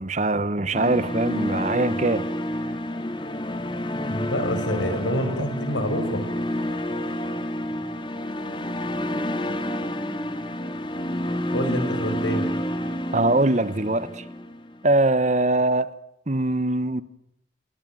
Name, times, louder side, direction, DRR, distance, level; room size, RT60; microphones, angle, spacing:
voice 1, 0.0-2.3 13.1-14.2 14.8-16.0 16.3-17.0, right 2 dB, 40° right, 1.1 m, -22 dB
sound 1, 0.7-14.8, left 1 dB, 25° left, 2.3 m, -29 dB
voice 2, 3.9-6.2 11.5-12.5, equal, 80° left, 5.4 m, -27 dB
27.5 x 23.5 x 9.1 m
head